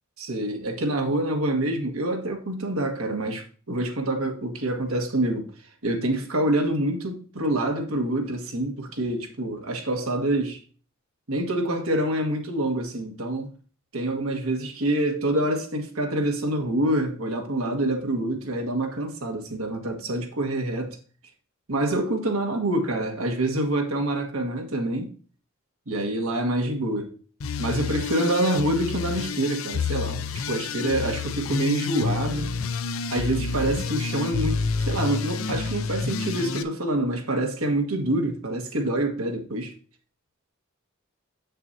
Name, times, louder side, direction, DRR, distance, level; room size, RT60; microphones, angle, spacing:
voice 1, 0.2-5.5 5.8-10.6 11.3-13.5 13.9-21.0 21.7-25.1 25.9-27.1 27.6-30.2 30.5-32.5 33.1-39.7, right 1 dB, 85° right, 1.6 m, -26 dB
sound 1, 27.4-36.6, left 5 dB, 70° left, 0.5 m, -29 dB
7.8 x 6.6 x 2.7 m
head